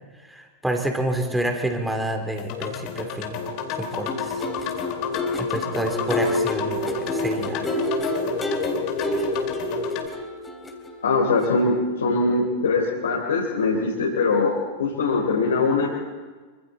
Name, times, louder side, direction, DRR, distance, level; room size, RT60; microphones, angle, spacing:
voice 1, 0.2-3.4 3.7-4.4 5.4-7.7, right 1 dB, 5° right, 4 dB, 3.4 m, -28 dB
sound 1, 2.4-10.1, left 6 dB, 45° left, 2.6 m, -30 dB
sound 2, 3.9-11.1 11.4-11.6, left 1 dB, 10° left, 3.2 m, -29 dB
voice 2, 11.0-15.9, left 3 dB, 70° left, -2 dB, 3.6 m, -22 dB
26.5 x 25.5 x 4.3 m, 1.4 s
figure-of-eight pair, 90°, 0 cm